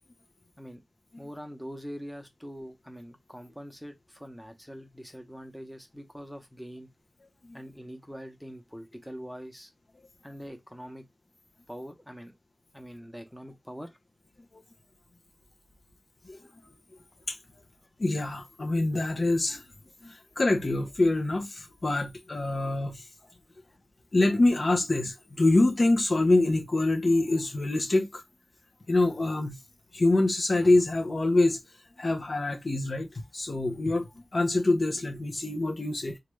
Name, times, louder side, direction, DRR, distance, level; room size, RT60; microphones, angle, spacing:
voice 1, 1.2-6.9 7.5-9.7 10.2-11.1 11.7-12.4 12.7-14.0, equal, ahead, 0.8 m, -43 dB
voice 2, 18.0-19.6 20.0-23.1 24.1-28.2 28.9-29.6 29.9-31.6 32.0-36.2, left 2 dB, 55° left, 0.6 m, -25 dB
3.1 x 2.3 x 3.1 m
wide cardioid pair, 75°, 0 cm